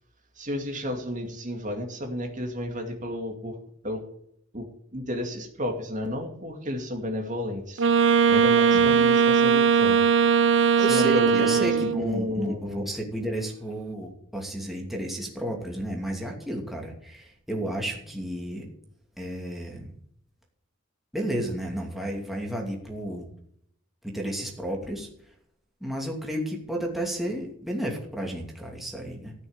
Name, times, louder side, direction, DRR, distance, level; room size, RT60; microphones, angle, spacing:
voice 1, 0.4-3.6 3.8-4.0 4.5-4.7 4.9-7.8 8.3-10.0 10.8-11.5 12.0-12.9, left 1 dB, 40° right, 3 dB, 2.3 m, -32 dB
Wind instrument woodwind instrument, 7.8-12.1, right 6 dB, 65° right, 0.7 m, -20 dB
voice 2, 10.8-18.6 19.2-19.9 21.1-23.3 24.1-25.1 25.8-29.3, right 1 dB, ahead, 0 dB, 2.7 m, -32 dB
15.0 x 6.4 x 8.8 m, 0.68 s
head